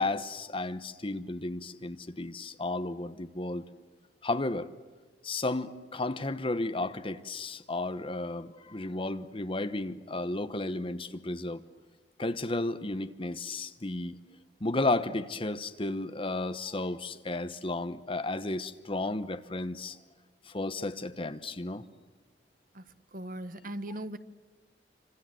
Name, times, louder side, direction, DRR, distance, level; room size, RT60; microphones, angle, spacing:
voice 1, 0.0-3.6 4.2-4.7 5.2-11.6 12.2-14.2 14.6-20.0 20.5-21.8, left 2 dB, 30° left, 11 dB, 1.1 m, -33 dB
voice 2, 23.1-24.2, right 1 dB, 50° right, 12 dB, 1.2 m, -38 dB
28.0 x 26.0 x 7.8 m, 1.3 s
head